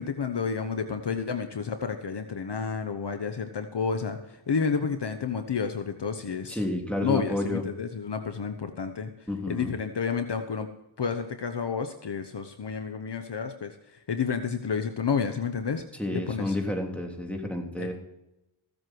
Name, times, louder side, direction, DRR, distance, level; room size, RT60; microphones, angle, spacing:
voice 1, 0.0-6.6 7.0-9.1 9.5-10.7 11.0-13.7 14.1-15.8 16.1-16.6 17.8-17.9, left 6 dB, 55° left, 7 dB, 1.1 m, -30 dB
voice 2, 6.5-7.6 9.3-9.7 16.0-17.9, left 1 dB, 5° left, 1 dB, 3.3 m, -30 dB
16.0 x 8.0 x 4.7 m, 0.90 s
cardioid pair, 50°, 48 cm